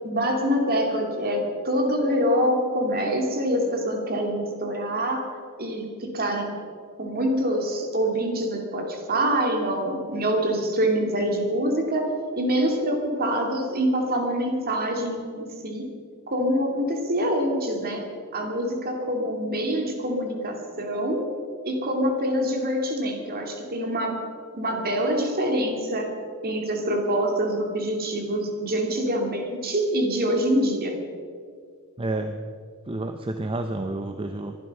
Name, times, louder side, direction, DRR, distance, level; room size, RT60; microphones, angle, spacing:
voice 1, 0.0-5.2 5.6-6.5 7.0-15.9 16.3-18.0 18.3-21.3 21.6-24.2 24.5-26.1 26.4-31.0, equal, 45° right, 3 dB, 2.6 m, -25 dB
voice 2, 32.0-32.5 32.9-34.6, right 2 dB, 25° right, 6 dB, 0.7 m, -30 dB
23.5 x 11.5 x 5.5 m, 2.2 s
head